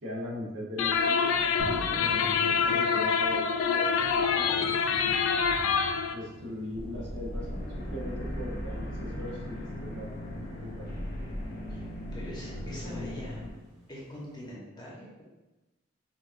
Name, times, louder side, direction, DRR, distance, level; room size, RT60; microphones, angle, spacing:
voice 1, 0.0-1.7 1.9-4.8 6.1-10.9 12.8-13.2, left 1 dB, 65° right, -4 dB, 1.0 m, -40 dB
sound 1, 0.8-6.1, left 6 dB, 80° left, 0.3 m, -26 dB
sound 2, 1.6-14.5, equal, 35° right, 1.4 m, -48 dB
sound 3, 6.7-13.5, equal, 50° left, 0.8 m, -37 dB
voice 2, 11.7-13.4 13.9-15.2, equal, 20° left, -5 dB, 1.0 m, -43 dB
5.9 x 2.5 x 2.6 m, 1.1 s
head